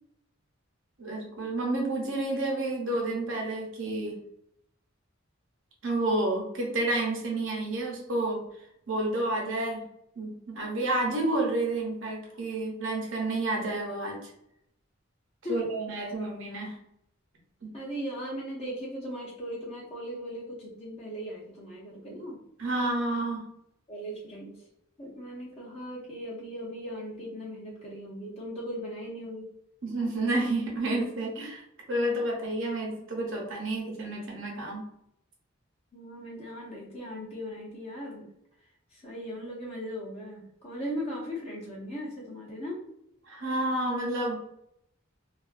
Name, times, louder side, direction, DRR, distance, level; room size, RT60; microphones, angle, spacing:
voice 1, 1.0-4.2 5.8-8.4 8.9-9.8 10.2-14.3 15.5-16.8 17.6-17.7 22.6-23.4 29.8-31.6 31.9-34.8 43.2-44.4, right 2 dB, 65° right, -1 dB, 0.8 m, -30 dB
voice 2, 17.7-22.4 23.9-24.7 25.0-29.5 35.9-38.3 38.9-42.8, equal, 30° left, -4 dB, 0.6 m, -38 dB
2.4 x 2.2 x 2.5 m, 0.76 s
head